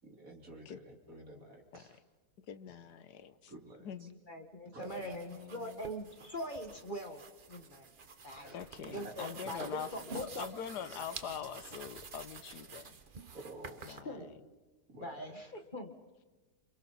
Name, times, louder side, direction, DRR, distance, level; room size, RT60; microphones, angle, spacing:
voice 1, 0.0-2.0 3.5-4.1 4.7-5.2 8.4-8.6 8.9-9.2 13.3-13.9 14.2-14.3 14.9-15.2, right 2 dB, 55° right, 1 dB, 3.7 m, -50 dB
voice 2, 2.4-3.5 3.8-4.1 5.0-5.8 8.5-9.9 10.1-13.0 13.9-14.2, left 8 dB, 80° left, 12 dB, 1.5 m, -44 dB
voice 3, 4.0-7.2 7.5-7.9 8.2-8.6 8.9-10.5 13.9-14.2 15.0-15.9, left 1 dB, 30° left, 5 dB, 1.8 m, -42 dB
sound 1, 4.8-14.0, right 5 dB, 35° right, 1.1 m, -49 dB
29.5 x 27.5 x 4.2 m, 1.3 s
omnidirectional pair, 1.8 m